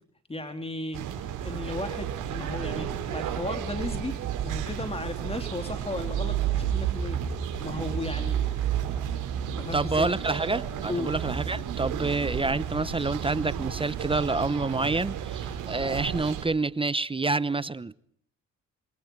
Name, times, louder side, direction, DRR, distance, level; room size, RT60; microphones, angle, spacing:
voice 1, 0.3-1.0 1.4-4.2 4.4-7.2 7.6-8.4 9.6-10.1 10.9-11.1, left 2 dB, 20° left, 3.3 m, -35 dB
sound 1, 0.9-16.4, right 9 dB, 85° right, 5.1 m, -31 dB
voice 2, 9.7-18.0, right 3 dB, 15° right, 0.8 m, -28 dB
27.0 x 23.0 x 4.6 m
cardioid pair, 90°, 30 cm